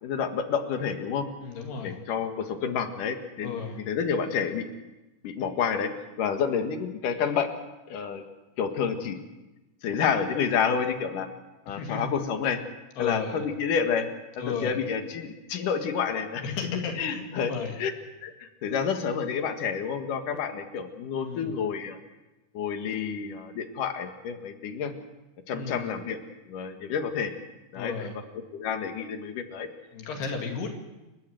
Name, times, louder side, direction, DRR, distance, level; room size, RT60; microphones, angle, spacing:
voice 1, 0.0-1.3 1.8-3.6 3.9-4.7 5.2-5.9 6.2-7.5 7.9-8.2 8.6-9.2 9.8-11.3 11.7-12.6 13.0-14.1 14.4-16.4 17.0-17.5 17.8-17.9 18.2-22.0 22.5-24.9 25.5-26.2 26.5-27.3 27.7-28.1 28.5-29.7, left 6 dB, 60° left, 6 dB, 3.0 m, -29 dB
voice 2, 1.4-2.0 3.4-3.8 11.7-12.1 13.0-13.4 14.4-14.8 16.4-17.8 21.2-21.6 25.5-25.9 27.7-28.1 29.9-30.7, left 5 dB, 75° left, 2 dB, 4.3 m, -33 dB
29.5 x 13.5 x 7.8 m, 1.1 s
omnidirectional pair, 4.7 m